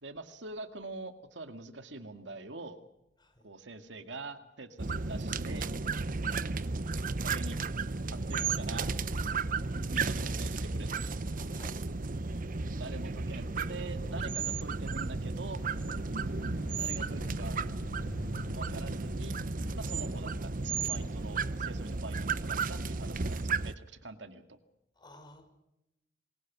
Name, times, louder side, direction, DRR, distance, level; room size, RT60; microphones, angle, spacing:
voice 1, 0.0-2.8 3.4-5.7 7.2-7.7 8.1-8.9 9.9-11.0 12.7-15.6 16.8-17.6 18.5-19.4 19.7-24.6, right 3 dB, 75° right, 8 dB, 2.1 m, -44 dB
sound 1, 4.8-23.7, right 4 dB, 50° right, 0.9 m, -34 dB
voice 2, 11.5-11.8 24.9-25.4, left 1 dB, 25° left, 5 dB, 6.3 m, -53 dB
sound 2, 15.5-21.1, left 1 dB, 60° left, 1.6 m, -46 dB
26.0 x 22.5 x 6.2 m, 0.88 s
head